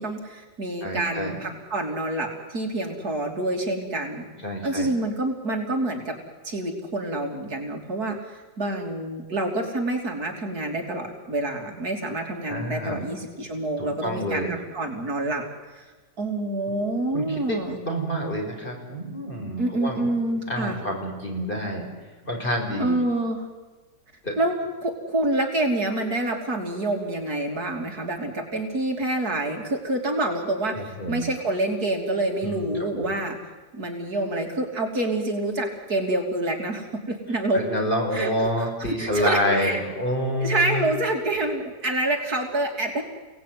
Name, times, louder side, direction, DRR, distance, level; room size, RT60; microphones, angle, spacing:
voice 1, 0.0-4.3 4.6-6.2 6.4-15.4 15.7-15.9 16.2-17.8 19.6-20.8 22.8-23.4 24.4-24.5 24.8-33.4 33.7-37.6 38.1-38.3 39.0-39.8 40.4-43.0, right 2 dB, 60° right, 2 dB, 3.6 m, -27 dB
voice 2, 0.8-1.4 4.4-4.9 12.5-13.0 13.8-14.5 17.1-20.1 20.5-21.9 22.2-23.0 24.2-24.3 30.7-31.3 32.4-33.2 37.5-40.9, equal, 30° left, 1 dB, 5.6 m, -28 dB
30.0 x 18.5 x 9.4 m, 1.3 s
omnidirectional pair, 1.8 m